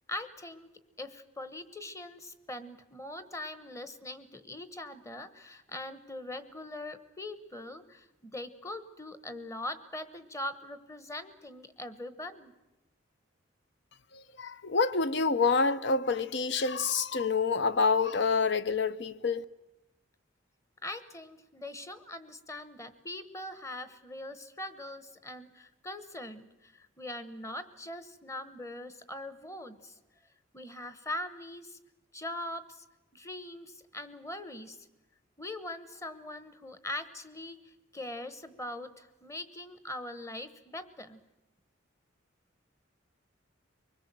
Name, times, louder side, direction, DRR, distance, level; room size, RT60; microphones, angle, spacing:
voice 1, 0.1-0.7 1.0-12.5 20.8-30.0 30.5-31.8 32.1-32.8 33.1-34.9 35.4-41.2, left 1 dB, 15° left, 1.1 m, -42 dB
voice 2, 14.1-19.4, left 4 dB, 60° left, 0.7 m, -27 dB
24.0 x 20.5 x 7.6 m
head